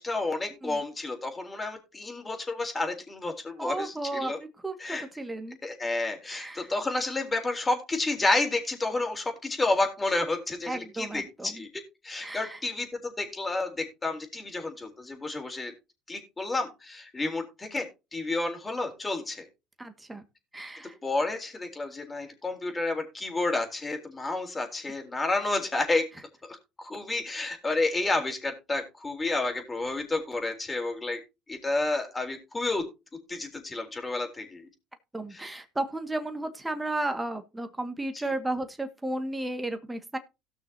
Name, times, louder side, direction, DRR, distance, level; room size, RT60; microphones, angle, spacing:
voice 1, 0.0-4.4 4.8-5.0 5.6-15.7 16.1-17.9 18.1-19.5 21.0-26.1 26.4-31.2 31.5-32.9 33.3-34.7 35.3-35.5, left 2 dB, 20° left, 4 dB, 3.7 m, -30 dB
voice 2, 3.6-4.3 4.6-5.6 6.3-6.7 10.7-11.6 12.2-12.6 19.8-20.2 20.5-21.0 35.1-40.2, right 2 dB, 10° right, 7 dB, 1.9 m, -33 dB
17.5 x 6.3 x 2.8 m, 0.26 s
supercardioid pair, 80°, 0 cm